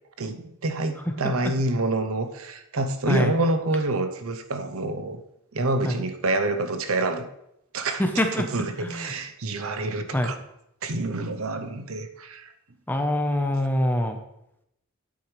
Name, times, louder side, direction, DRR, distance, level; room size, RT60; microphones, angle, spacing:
voice 1, 0.2-5.2 5.5-7.3 7.7-8.0 8.3-10.4 10.8-12.5, right 2 dB, 80° right, 8 dB, 0.8 m, -27 dB
voice 2, 8.0-8.5 8.8-9.1 10.1-10.3 12.9-14.2, left 1 dB, 10° left, 5 dB, 0.9 m, -24 dB
9.5 x 8.4 x 3.3 m, 0.81 s
head